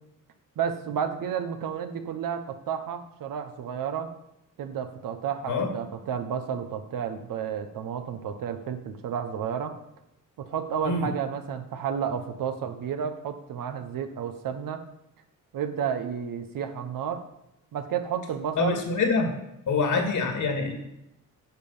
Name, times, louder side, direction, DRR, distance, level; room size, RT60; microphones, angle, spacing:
voice 1, 0.6-4.1 4.6-9.8 10.4-14.8 15.5-17.2 17.7-18.8, right 8 dB, 85° right, 8 dB, 1.1 m, -31 dB
voice 2, 18.6-19.3 19.7-20.7, left 4 dB, 65° left, 3 dB, 2.2 m, -25 dB
10.5 x 7.0 x 5.6 m, 0.84 s
cardioid pair, 125°, 33 cm